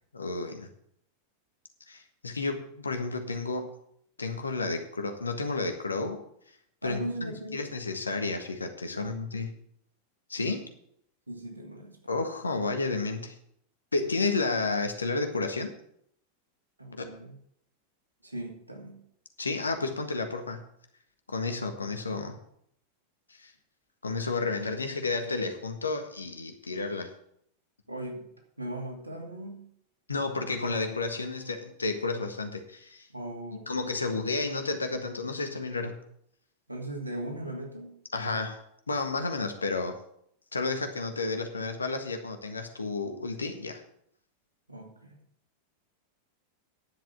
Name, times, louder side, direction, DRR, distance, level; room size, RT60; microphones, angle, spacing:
voice 1, 0.1-0.7 1.9-3.7 4.2-6.2 6.8-9.5 10.3-10.7 12.1-13.3 13.9-15.7 17.0-17.1 19.4-20.6 21.3-22.4 23.3-23.5 24.0-27.1 30.1-33.1 33.7-35.9 38.1-38.6 38.9-39.9 40.5-43.8, left 3 dB, 75° left, 6 dB, 1.6 m, -31 dB
voice 2, 6.8-7.7 8.9-9.4 11.3-12.0 16.8-17.4 18.2-19.0 27.9-28.3 28.6-29.7 33.1-33.7 36.7-38.0 44.7-45.2, right 1 dB, 80° right, 1 dB, 2.6 m, -39 dB
10.5 x 7.6 x 7.2 m, 0.69 s
figure-of-eight pair, 90°, 0 cm